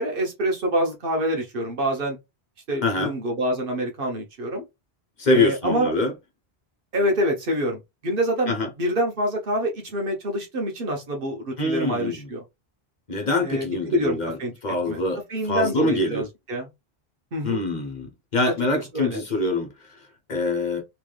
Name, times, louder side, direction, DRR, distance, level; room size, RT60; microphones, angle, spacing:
voice 1, 0.0-2.2 2.7-4.6 5.3-5.9 6.9-12.4 13.4-14.5 14.9-15.0 15.3-16.7 17.3-17.6 18.9-19.2, equal, 60° right, 1.1 m, -26 dB
voice 2, 5.2-6.1 8.5-8.7 11.6-12.3 13.1-14.4 14.6-16.2 17.4-20.8, left 2 dB, 45° left, 1.0 m, -24 dB
3.3 x 3.0 x 2.3 m
omnidirectional pair, 1.1 m